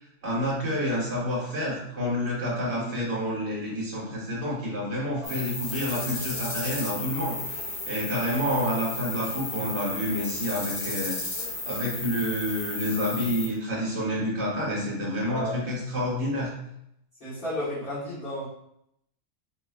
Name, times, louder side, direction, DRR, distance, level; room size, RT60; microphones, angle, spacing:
voice 1, 0.2-16.5, equal, 55° right, -7 dB, 1.6 m, -29 dB
voice 2, 2.7-3.0 5.2-5.4 15.3-15.6 17.2-18.5, equal, 45° left, -13 dB, 1.5 m, -33 dB
sound 1, 5.2-13.5, left 3 dB, 75° left, 1.5 m, -34 dB
4.9 x 2.5 x 2.3 m, 0.77 s
omnidirectional pair, 1.4 m